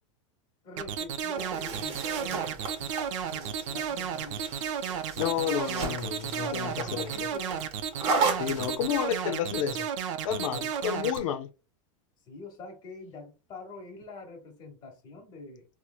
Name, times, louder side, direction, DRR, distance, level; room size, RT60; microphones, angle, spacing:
voice 1, 0.6-2.7 3.2-4.5 6.4-7.7 12.3-15.7, left 3 dB, 25° left, 1.0 m, -45 dB
sound 1, 0.8-11.2, right 8 dB, 75° right, 0.5 m, -33 dB
sound 2, 1.3-9.2 10.4-11.2, right 4 dB, 40° right, 0.8 m, -35 dB
voice 2, 5.2-7.3 8.4-9.9 10.2-11.5, left 9 dB, 85° left, 0.6 m, -31 dB
4.2 x 2.1 x 2.3 m
supercardioid pair, 160°, 16 cm